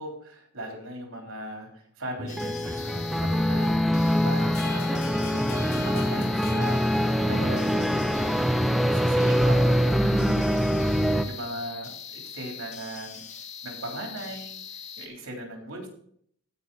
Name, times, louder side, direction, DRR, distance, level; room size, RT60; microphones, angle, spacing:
voice 1, 0.0-8.4 8.9-13.2 13.6-15.9, right 1 dB, 70° right, 1 dB, 3.6 m, -39 dB
sound 1, 2.2-11.2, equal, ahead, 0.6 m, -24 dB
sound 2, 2.3-15.1, left 7 dB, 30° left, 1.1 m, -42 dB
sound 3, 4.5-7.8, left 4 dB, 75° left, 3.7 m, -44 dB
15.0 x 5.8 x 4.2 m, 0.64 s
head